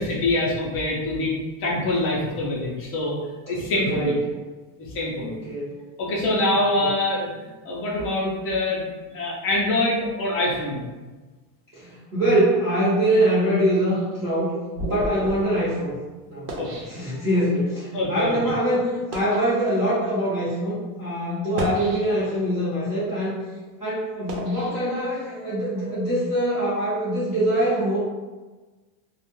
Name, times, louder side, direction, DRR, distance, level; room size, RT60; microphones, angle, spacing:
voice 1, 0.0-1.3 1.6-3.1 3.4-4.2 4.9-5.4 6.0-8.8 9.1-10.8 16.6-16.7 17.9-18.4, left 2 dB, 30° left, -4 dB, 0.5 m, -24 dB
voice 2, 3.7-4.2 5.2-5.8 6.8-6.9 11.7-14.6 14.8-16.0 16.3-16.5 16.9-23.4 23.8-28.0, right 1 dB, 15° right, -13 dB, 0.6 m, -23 dB
sound 1, 13.9-17.6 18.3-18.4 18.9-19.5 20.3-20.4 21.4-22.5 23.0-25.5, right 1 dB, 90° right, 0.8 m, -35 dB
2.4 x 2.2 x 2.9 m, 1.3 s
supercardioid pair, 155°, 47 cm